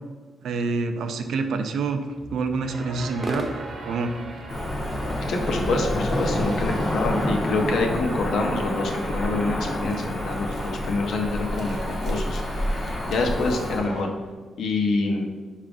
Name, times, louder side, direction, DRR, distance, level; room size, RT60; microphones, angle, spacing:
voice 1, 0.4-2.0 2.3-3.5 3.8-4.1, right 4 dB, 80° right, 7 dB, 0.3 m, -27 dB
sound 1, 2.0-6.9, right 1 dB, 10° right, 0.4 m, -39 dB
sound 2, 2.6-14.0, right 2 dB, 60° right, 0.8 m, -39 dB
Cricket / Motor vehicle (road), 4.5-13.8, left 1 dB, 35° left, 0.6 m, -28 dB
voice 2, 5.3-12.4 13.1-14.1 14.6-15.3, left 3 dB, 75° left, 3 dB, 0.6 m, -26 dB
4.8 x 2.4 x 3.5 m, 1.4 s
wide cardioid pair, 145°, 0 cm